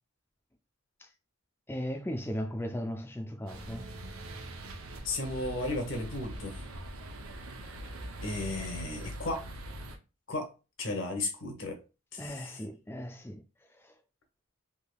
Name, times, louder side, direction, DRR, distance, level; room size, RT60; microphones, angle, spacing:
voice 1, 1.7-3.9 12.2-13.4 13.7-13.9, equal, 10° left, 0.4 m, -37 dB
sound 1, 3.5-10.0, right 1 dB, 80° right, 0.6 m, -42 dB
voice 2, 5.0-6.6 8.2-9.5 10.3-10.5 10.8-11.8 12.1-12.5, left 2 dB, 60° left, 0.9 m, -34 dB
3.3 x 2.8 x 2.2 m
head